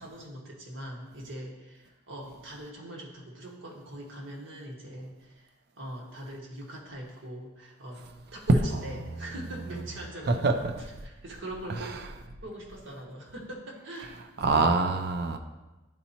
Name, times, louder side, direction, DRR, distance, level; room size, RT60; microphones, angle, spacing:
voice 1, 0.0-5.5 5.8-8.0 8.3-10.5 11.0-12.0 12.4-14.8, right 1 dB, 85° right, 1.6 m, -42 dB
voice 2, 10.3-10.7 11.8-11.9 14.4-15.4, right 3 dB, 55° right, 0.4 m, -25 dB
10.5 x 4.2 x 2.9 m
head